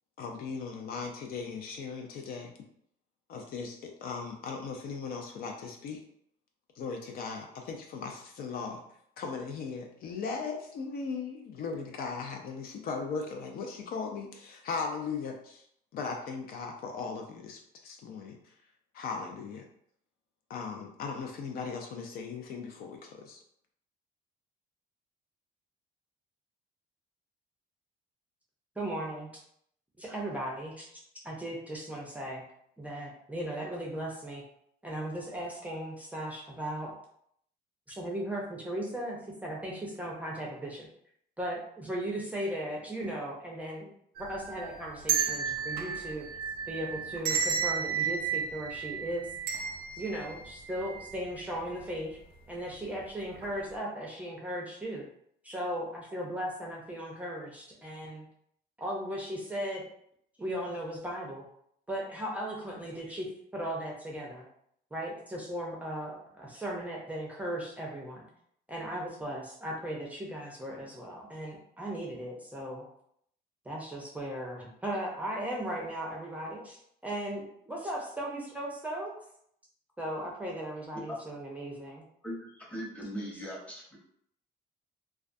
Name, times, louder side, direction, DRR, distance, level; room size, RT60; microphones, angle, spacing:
voice 1, 0.2-2.5 3.3-6.0 6.8-8.8 9.2-15.6 15.9-18.4 18.9-19.6 20.5-23.4, left 5 dB, 60° left, 3 dB, 0.4 m, -38 dB
voice 2, 28.8-29.3 30.0-30.9 31.2-32.4 32.8-34.4 34.8-36.9 37.9-40.9 41.4-43.9 44.3-46.3 46.7-49.3 49.9-52.2 52.5-55.1 55.4-58.3 58.8-59.8 60.4-61.4 61.9-63.3 63.5-64.5 64.9-68.2 68.7-72.9 73.7-79.1 80.0-82.0, right 1 dB, 10° right, -3 dB, 0.5 m, -37 dB
sound 1, 44.2-51.3 51.7-51.8 52.7-53.0 53.4-53.5, right 7 dB, 65° right, 0.4 m, -33 dB
voice 3, 82.2-84.0, equal, 10° left, -4 dB, 0.8 m, -39 dB
2.3 x 2.2 x 2.5 m, 0.69 s
cardioid pair, 110°, 17 cm